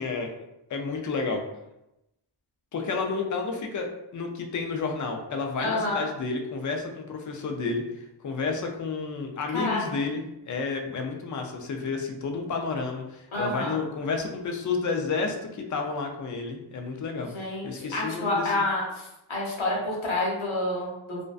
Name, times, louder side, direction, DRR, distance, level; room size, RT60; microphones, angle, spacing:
voice 1, 0.0-1.4 2.7-7.8 8.2-18.6, left 4 dB, 40° left, 3 dB, 0.4 m, -31 dB
voice 2, 5.6-6.0 9.5-9.8 13.3-13.8 17.3-21.2, left 2 dB, 75° left, -4 dB, 0.9 m, -28 dB
2.5 x 2.1 x 2.3 m, 0.90 s
cardioid pair, 40°, 48 cm